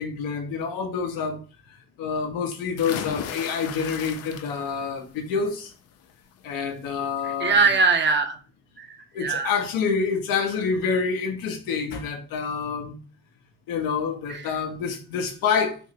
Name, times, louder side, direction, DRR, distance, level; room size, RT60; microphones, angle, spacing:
voice 1, 0.0-1.4 2.0-5.7 6.4-7.6 9.1-13.0 13.7-15.8, left 5 dB, 75° left, 0.9 m, -27 dB
sound 1, 2.8-4.9 5.3-5.7 7.1-7.2 7.6-7.7, left 9 dB, 45° left, 0.5 m, -36 dB
voice 2, 7.2-8.4 8.8-9.5 14.3-14.5, right 4 dB, 30° right, 0.7 m, -22 dB
3.4 x 3.1 x 2.8 m
supercardioid pair, 90°, 35 cm